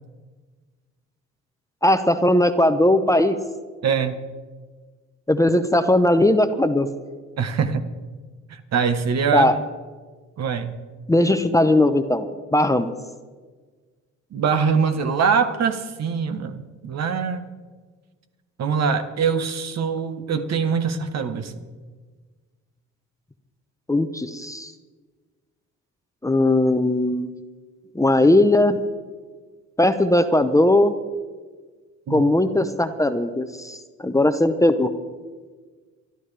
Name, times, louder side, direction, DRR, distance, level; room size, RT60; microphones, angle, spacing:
voice 1, 1.8-3.3 5.3-6.9 9.3-9.6 11.1-12.3 12.5-12.9 23.9-24.7 26.2-27.3 27.9-28.8 29.8-30.9 32.1-33.8 34.0-34.9, left 1 dB, 10° left, 9 dB, 0.8 m, -18 dB
voice 2, 3.8-4.2 7.4-7.8 8.5-9.5 10.4-10.8 14.3-17.5 18.6-21.5 32.1-32.2, right 6 dB, 60° right, 8 dB, 1.3 m, -23 dB
24.0 x 12.0 x 3.4 m, 1.4 s
cardioid pair, 90°, 30 cm